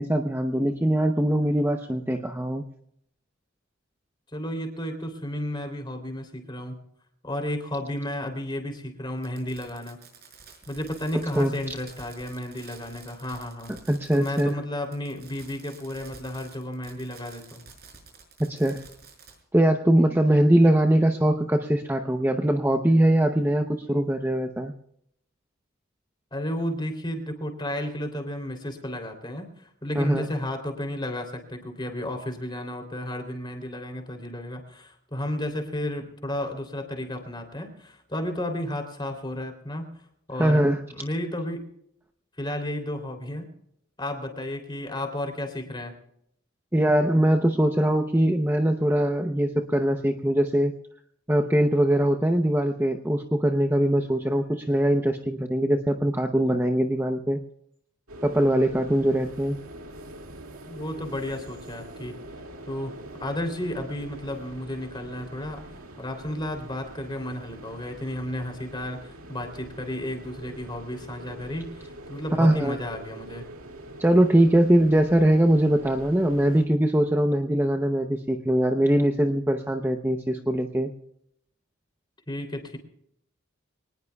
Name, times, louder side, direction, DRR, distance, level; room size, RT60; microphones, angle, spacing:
voice 1, 0.0-2.6 11.3-11.5 13.7-14.6 18.4-18.8 19.5-24.7 30.0-30.3 40.4-40.8 46.7-50.7 51.3-57.4 58.2-59.6 72.4-72.8 74.0-80.9, right 1 dB, 10° right, 4 dB, 0.7 m, -22 dB
voice 2, 4.3-6.8 7.2-10.0 10.7-13.7 14.1-17.6 26.3-39.9 40.3-40.6 40.9-41.6 42.4-43.5 44.0-45.9 60.7-62.1 62.7-62.9 63.2-65.6 66.0-73.4 82.3-82.8, left 1 dB, 20° left, 4 dB, 3.2 m, -33 dB
Fireworks, 9.2-14.6 14.8-19.3, right 5 dB, 45° right, 5.7 m, -50 dB
sound 1, 58.1-76.6, right 1 dB, 80° right, 2.3 m, -44 dB
25.0 x 19.5 x 2.3 m, 0.74 s
head